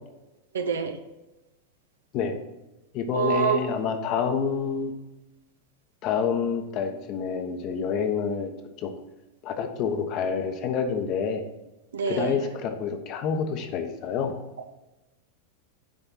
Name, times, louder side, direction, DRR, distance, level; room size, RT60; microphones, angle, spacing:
voice 1, 0.5-1.0 3.1-3.6 11.9-12.4, right 6 dB, 75° right, 7 dB, 0.8 m, -25 dB
voice 2, 2.9-4.9 6.0-8.5 8.8-8.9 9.4-11.4 12.1-14.3, left 6 dB, 45° left, 6 dB, 1.1 m, -28 dB
7.5 x 4.5 x 5.7 m, 1.0 s
figure-of-eight pair, 90°, 0 cm